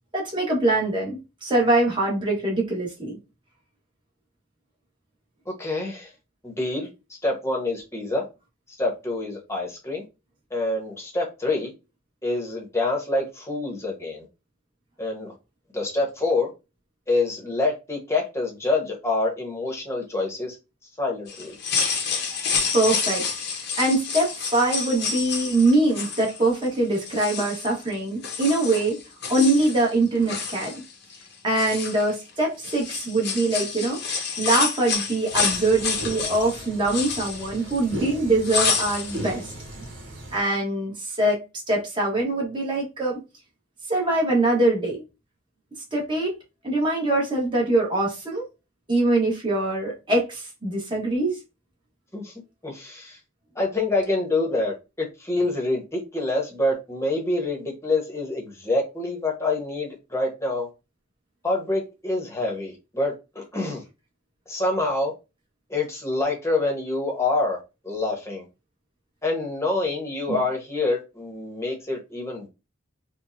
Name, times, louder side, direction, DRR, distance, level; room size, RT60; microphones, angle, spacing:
voice 1, 0.1-3.2 22.7-23.2 23.8-29.0 29.3-30.7 31.4-34.0 34.4-39.5 39.8-39.9 40.3-41.4 41.7-43.2 43.9-45.0 45.9-46.4 46.6-48.4 48.9-51.4 70.3-70.4, right 2 dB, 25° right, 1.4 m, -23 dB
voice 2, 5.5-6.1 6.4-6.9 7.2-8.2 8.8-10.0 10.5-11.7 12.2-14.3 15.0-15.3 15.7-16.5 17.1-20.6 21.0-21.6 52.1-52.3 52.6-53.2 53.5-60.7 61.4-63.8 64.5-65.1 65.7-67.6 67.8-68.4 69.2-72.5, left 2 dB, 15° left, 1.1 m, -26 dB
sound 1, 21.3-26.7 27.0-27.9 28.2-29.9 30.2-31.2 31.5-32.3 32.6-38.1 38.4-39.4 39.6-39.7, left 5 dB, 55° left, 0.9 m, -29 dB
sound 2, 35.3-40.4, right 1 dB, 70° right, 1.1 m, -37 dB
4.5 x 2.3 x 2.6 m
head